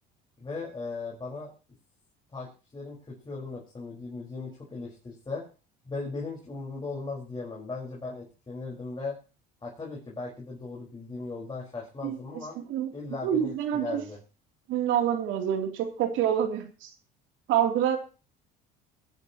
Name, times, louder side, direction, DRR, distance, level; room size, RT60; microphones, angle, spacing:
voice 1, 0.4-1.5 2.3-2.5 2.7-5.4 5.8-9.2 9.6-12.6 12.9-14.2, left 3 dB, 20° left, -3 dB, 4.9 m, -37 dB
voice 2, 12.6-12.9 13.2-14.0 14.7-16.9 17.5-18.0, right 10 dB, 70° right, 4 dB, 3.1 m, -27 dB
21.0 x 11.0 x 3.0 m, 0.34 s
supercardioid pair, 90°, 21 cm